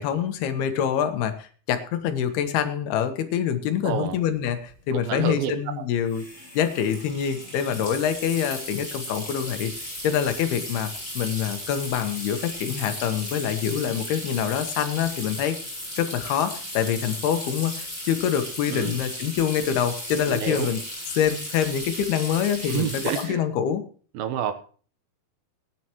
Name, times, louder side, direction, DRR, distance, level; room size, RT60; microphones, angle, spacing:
voice 1, 0.0-6.2 6.5-9.7 10.0-15.6 16.0-20.8 21.2-23.8, left 9 dB, 90° left, 8 dB, 3.2 m, -25 dB
voice 2, 3.8-4.2 4.9-5.5 5.8-5.9 18.7-19.0 20.3-20.7 22.6-23.4 24.1-24.5, right 9 dB, 75° right, 9 dB, 2.7 m, -28 dB
sound 1, 4.1-4.2 4.4-4.7 6.1-23.2, left 1 dB, 15° left, 7.4 m, -36 dB
19.0 x 10.5 x 3.0 m, 0.41 s
omnidirectional pair, 4.4 m